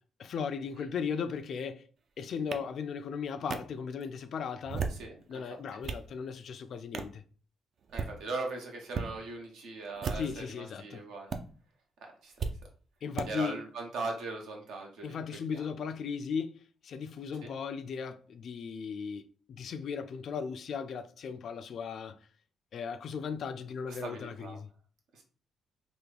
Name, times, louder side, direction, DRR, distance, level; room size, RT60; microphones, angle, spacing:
voice 1, 0.2-1.9 2.2-4.9 5.3-7.2 10.2-11.0 13.0-13.6 15.0-22.2 22.7-24.7, left 6 dB, 60° left, 0.3 m, -37 dB
sound 1, 2.5-2.6 3.5-3.6 4.6-5.1 5.6-6.1 6.9-7.2 7.8-8.1 8.9-9.1 9.9-10.4 11.3-11.4 12.4-12.5 13.2-13.3, right 5 dB, 55° right, 0.4 m, -35 dB
voice 2, 4.9-5.4 5.7-5.8 7.9-11.3 12.0-12.3 13.3-15.2 15.5-15.7 17.4-17.5 23.9-24.6 25.1-25.2, right 3 dB, 80° right, 0.9 m, -40 dB
3.4 x 2.2 x 3.3 m
cardioid pair, 90°, 0 cm